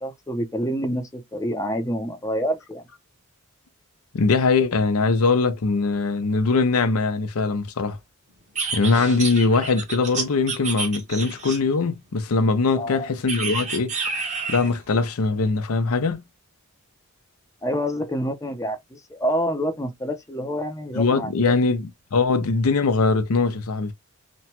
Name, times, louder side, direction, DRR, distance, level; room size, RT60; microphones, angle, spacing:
voice 1, 0.0-2.8 12.8-13.1 17.6-21.6, equal, 15° left, 0.5 m, -27 dB
voice 2, 4.1-8.0 8.7-13.9 14.5-16.2 20.9-23.9, left 4 dB, 90° left, 0.6 m, -21 dB
sound 1, 8.6-11.8 13.3-14.8, right 4 dB, 35° right, 0.9 m, -29 dB
3.0 x 2.2 x 2.8 m
head